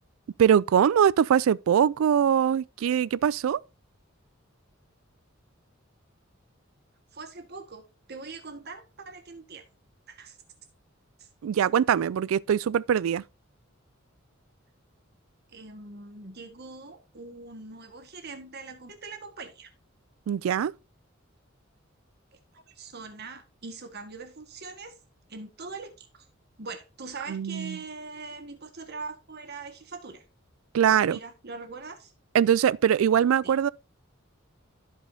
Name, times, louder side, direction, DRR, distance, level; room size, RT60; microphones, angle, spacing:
voice 1, 0.4-3.6 11.4-13.2 20.3-20.7 27.3-27.8 30.7-31.2 32.3-33.7, right 8 dB, 85° right, 0.3 m, -22 dB
voice 2, 7.1-7.8 8.1-9.6 10.1-10.4 11.2-11.3 15.5-19.7 22.5-24.9 25.3-26.2 26.6-30.2 31.0-32.1 33.4-33.6, right 4 dB, 55° right, 1.6 m, -42 dB
14.5 x 5.1 x 2.7 m
head